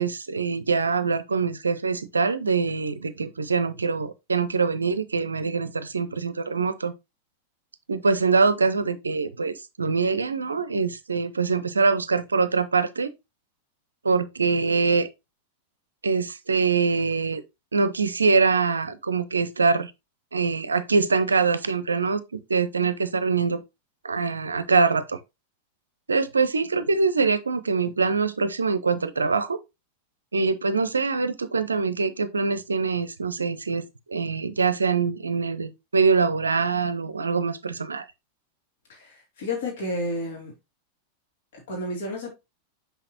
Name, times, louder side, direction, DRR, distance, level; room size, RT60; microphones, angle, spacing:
voice 1, 0.0-6.9 7.9-13.1 14.0-15.1 16.0-17.4 17.7-19.9 20.3-23.6 24.0-25.2 26.1-29.6 30.3-38.0, right 4 dB, 75° right, 0.6 m, -24 dB
voice 2, 38.9-40.5 41.5-42.3, left 1 dB, 55° left, 2.9 m, -31 dB
5.8 x 5.6 x 2.9 m
figure-of-eight pair, 90°, 0 cm